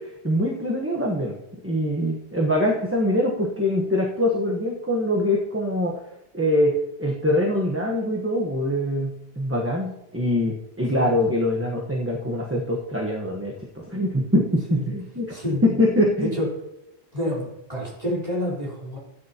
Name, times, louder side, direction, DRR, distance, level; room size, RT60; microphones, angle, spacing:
voice 1, 0.0-1.3 1.6-6.0 6.3-15.3 15.6-16.3, left 1 dB, 15° right, -2 dB, 1.2 m, -23 dB
voice 2, 15.3-15.6 16.2-16.5 17.1-19.0, left 1 dB, 40° right, -4 dB, 4.0 m, -28 dB
13.5 x 9.5 x 2.9 m, 0.89 s
omnidirectional pair, 1.1 m